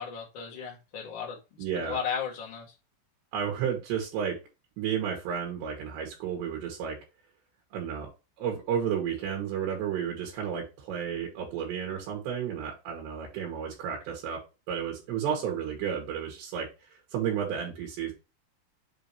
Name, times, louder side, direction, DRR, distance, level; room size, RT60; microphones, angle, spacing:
voice 1, 0.0-1.4 1.8-2.7, left 7 dB, 65° left, -1 dB, 1.1 m, -34 dB
voice 2, 1.6-2.0 3.3-4.4 4.8-7.0 7.7-8.1 8.4-14.4 14.7-16.7 17.1-18.1, right 8 dB, 85° right, 1 dB, 3.8 m, -32 dB
7.3 x 2.8 x 4.6 m, 0.28 s
omnidirectional pair, 4.8 m